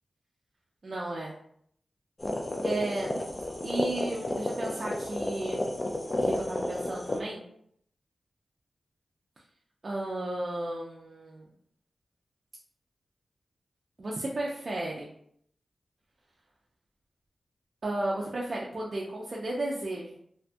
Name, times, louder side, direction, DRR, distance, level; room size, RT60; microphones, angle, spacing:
voice 1, 0.8-1.3 2.6-3.1 3.6-5.6 6.2-7.4 9.8-11.5 14.0-15.1 17.8-20.2, right 2 dB, 60° right, -4 dB, 0.4 m, -34 dB
sound 1, 2.2-7.2, left 1 dB, 35° left, 0.4 m, -31 dB
2.7 x 2.2 x 2.6 m, 0.68 s
cardioid pair, 45°, 0 cm